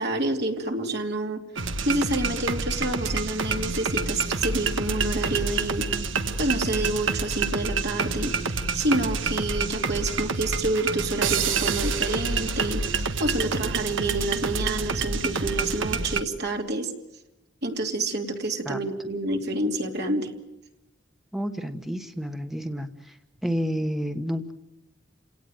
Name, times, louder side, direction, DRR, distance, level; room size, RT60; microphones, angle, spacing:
voice 1, 0.0-1.4 1.8-5.9 6.4-8.3 8.7-16.9 17.6-20.3, right 2 dB, 60° right, 3 dB, 2.9 m, -28 dB
sound 1, 1.5-16.2, right 4 dB, 85° right, 1.4 m, -28 dB
voice 2, 21.3-23.2 23.4-24.5, equal, ahead, 6 dB, 1.2 m, -30 dB
29.5 x 18.0 x 9.2 m, 0.95 s
head